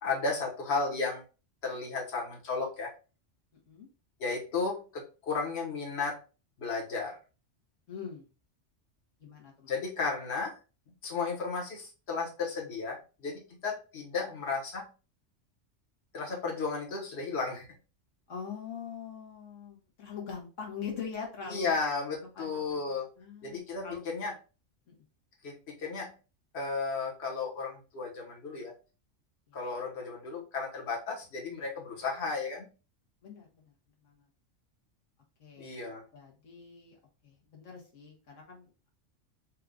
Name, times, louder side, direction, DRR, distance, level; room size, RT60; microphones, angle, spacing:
voice 1, 0.0-1.2 1.6-2.9 4.2-6.2 6.6-7.2 9.7-10.5 11.0-14.9 16.1-17.7 21.5-23.1 23.4-24.3 25.4-26.1 26.5-28.7 29.5-32.7 35.6-36.0, left 4 dB, 60° left, -2 dB, 1.5 m, -34 dB
voice 2, 7.9-8.3 9.2-9.7 18.3-21.7 22.3-24.3 24.9-25.0 29.5-29.6 33.2-33.7 34.0-34.3 35.4-37.0 37.2-38.9, left 6 dB, 90° left, -1 dB, 1.5 m, -43 dB
4.5 x 2.4 x 3.7 m, 0.33 s
omnidirectional pair, 1.3 m